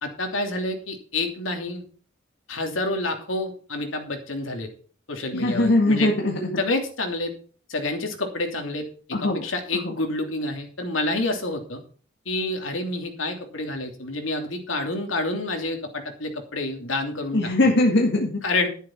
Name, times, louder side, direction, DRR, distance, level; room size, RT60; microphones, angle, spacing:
voice 1, 0.0-1.8 2.5-4.7 5.1-6.1 6.6-7.3 7.7-8.8 9.2-11.8 12.2-17.4 18.4-18.7, left 2 dB, 80° left, 4 dB, 3.0 m, -28 dB
voice 2, 5.3-6.5 9.1-9.4 9.7-9.9 17.3-18.4, left 1 dB, 65° left, 0 dB, 1.9 m, -21 dB
11.5 x 10.0 x 4.6 m, 0.43 s
head